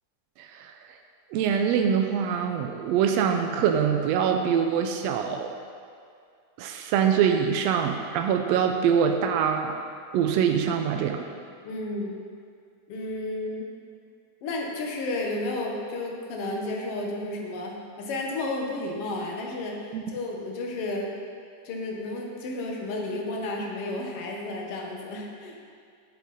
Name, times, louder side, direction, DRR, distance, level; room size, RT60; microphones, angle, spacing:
voice 1, 0.4-0.7 1.3-5.5 6.6-9.7 10.1-11.2 19.9-20.0, right 7 dB, 90° right, 4 dB, 1.5 m, -24 dB
voice 2, 11.6-12.2 12.9-13.7 14.4-21.1 21.7-25.6, left 2 dB, 60° left, 0 dB, 1.9 m, -32 dB
11.0 x 8.2 x 4.1 m, 2.2 s
omnidirectional pair, 3.6 m